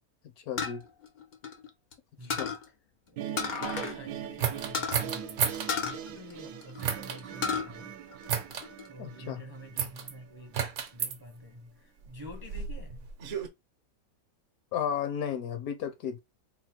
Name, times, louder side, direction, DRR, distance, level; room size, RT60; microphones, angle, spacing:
voice 1, 0.5-0.8 2.2-2.5 9.0-9.4 14.7-16.2, left 8 dB, 70° left, 1.0 m, -33 dB
sound 1, 0.6-1.9 2.3-2.6 3.4-4.0 4.3-4.4 4.7-5.0 5.7-6.8 7.2-7.7 8.1-8.9, left 5 dB, 90° left, 0.4 m, -33 dB
voice 2, 2.2-2.5 3.1-3.2 3.7-8.0 8.9-13.1, equal, 30° right, 0.4 m, -48 dB
sound 2, 3.2-10.3, right 9 dB, 80° right, 1.1 m, -42 dB
sound 3, 4.4-5.7 6.8-7.2 8.3-8.7 9.8-10.1 10.5-11.1 12.0-13.5, right 8 dB, 60° right, 0.9 m, -32 dB
3.9 x 2.0 x 4.3 m
omnidirectional pair, 1.8 m